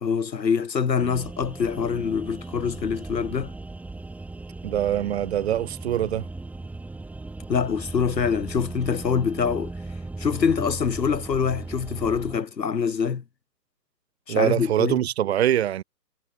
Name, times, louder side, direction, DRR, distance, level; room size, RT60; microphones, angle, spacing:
voice 1, 0.0-3.5 7.5-9.7 10.2-13.2 14.3-15.0, left 6 dB, 80° left, 1.5 m, -25 dB
sound 1, 1.0-12.4, right 2 dB, 5° right, 4.3 m, -37 dB
voice 2, 4.6-6.3 14.3-15.8, right 11 dB, 40° right, 4.9 m, -23 dB
figure-of-eight pair, 145°, 50 cm